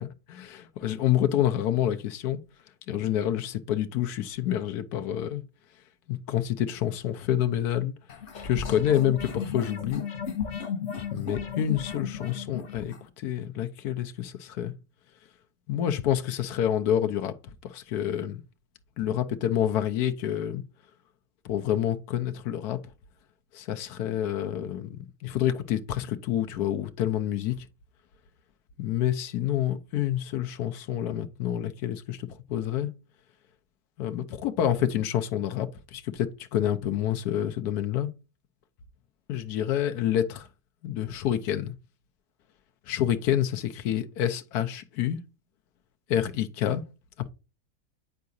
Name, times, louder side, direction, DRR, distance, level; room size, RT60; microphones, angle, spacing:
voice 1, 0.0-2.4 2.9-5.4 6.1-7.9 8.4-10.0 11.1-14.7 15.7-17.4 17.6-18.4 19.0-20.6 21.4-22.8 23.5-27.6 28.8-32.9 34.0-38.1 39.3-40.5 40.8-41.7 42.9-45.2 46.1-46.8, left 11 dB, 80° left, 1.2 m, -28 dB
sound 1, 8.1-13.0, left 7 dB, 50° left, 1.2 m, -34 dB
9.4 x 4.7 x 2.6 m
omnidirectional pair, 1.6 m